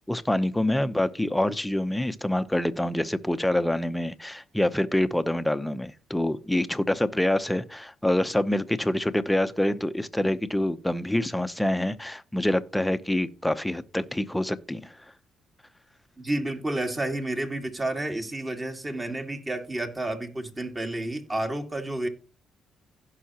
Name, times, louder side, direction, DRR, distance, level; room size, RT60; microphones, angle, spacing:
voice 1, 0.1-15.0, left 1 dB, 5° left, 0.8 m, -26 dB
voice 2, 16.2-22.1, right 1 dB, 25° right, 2.0 m, -30 dB
16.0 x 5.7 x 2.9 m
cardioid pair, 90°, 0 cm